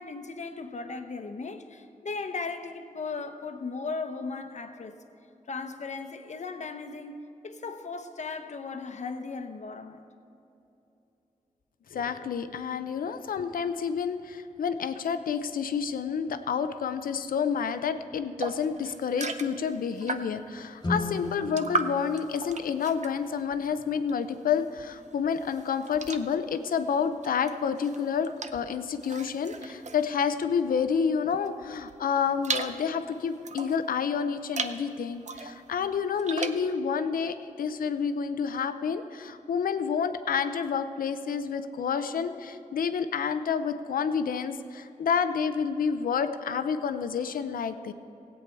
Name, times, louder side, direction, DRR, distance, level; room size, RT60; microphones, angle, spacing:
voice 1, 0.0-5.0 5.5-10.0, left 4 dB, 55° left, 0.9 m, -37 dB
voice 2, 11.9-47.9, left 6 dB, 85° left, 0.6 m, -29 dB
sound 1, 18.4-20.5 20.9-24.4 24.7-31.0 31.5-33.8 34.4-34.8 35.2-36.7, right 4 dB, 55° right, 0.7 m, -37 dB
Guitar, 20.8-23.4, left 2 dB, 30° left, 1.4 m, -36 dB
17.0 x 8.4 x 4.6 m
cardioid pair, 65°, 14 cm